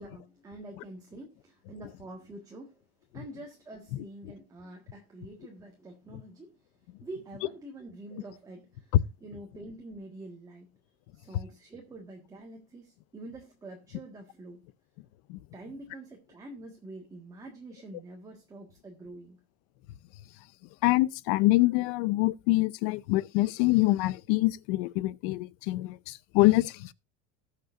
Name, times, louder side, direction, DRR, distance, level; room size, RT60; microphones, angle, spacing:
voice 1, 0.0-2.8 3.1-10.7 11.1-14.6 15.5-19.4, right 2 dB, 10° right, 1.6 m, -46 dB
voice 2, 20.8-26.9, left 20 dB, 50° left, 0.6 m, -25 dB
19.0 x 6.7 x 2.5 m
cardioid pair, 175°, 31 cm